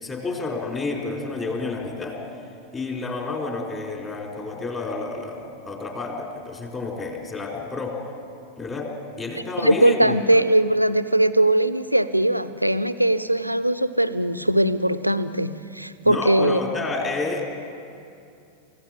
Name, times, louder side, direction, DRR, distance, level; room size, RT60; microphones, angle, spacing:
voice 1, 0.0-2.2 2.7-8.0 8.6-8.9 9.2-10.4 16.0-17.4, left 3 dB, 20° left, 1 dB, 4.1 m, -30 dB
voice 2, 9.6-16.6, right 1 dB, 90° right, 12 dB, 0.7 m, -20 dB
28.5 x 16.0 x 7.5 m, 2.5 s
figure-of-eight pair, 90°, 0 cm